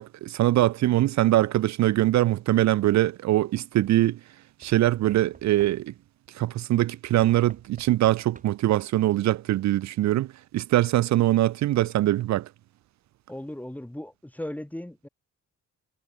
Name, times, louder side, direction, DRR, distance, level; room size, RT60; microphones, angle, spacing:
voice 1, 0.0-4.2 4.6-5.9 6.3-12.5, right 15 dB, 65° right, 0.6 m, -23 dB
Knock / Wood, 2.7-2.9 4.6-6.2 7.2-8.8 9.8-9.9 10.2-10.3, right 4 dB, 25° right, 2.7 m, -54 dB
voice 2, 13.3-15.1, left 1 dB, 5° left, 1.7 m, -37 dB
cardioid pair, 90°, 30 cm